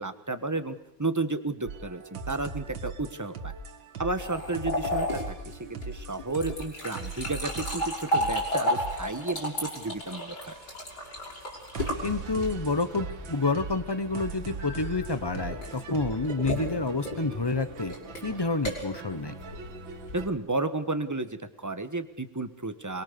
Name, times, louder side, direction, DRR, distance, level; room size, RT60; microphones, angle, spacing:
voice 1, 0.0-3.5 4.0-10.5 20.1-23.0, right 3 dB, 10° right, 9 dB, 1.2 m, -32 dB
sound 1, 1.7-20.3, right 4 dB, 75° right, 2.3 m, -41 dB
sound 2, 4.2-12.8 14.6-20.3, equal, 60° left, 6.0 m, -33 dB
voice 2, 12.0-17.9 18.2-19.3, left 3 dB, 20° left, 13 dB, 0.7 m, -29 dB
25.5 x 23.0 x 6.9 m, 0.78 s
omnidirectional pair, 2.1 m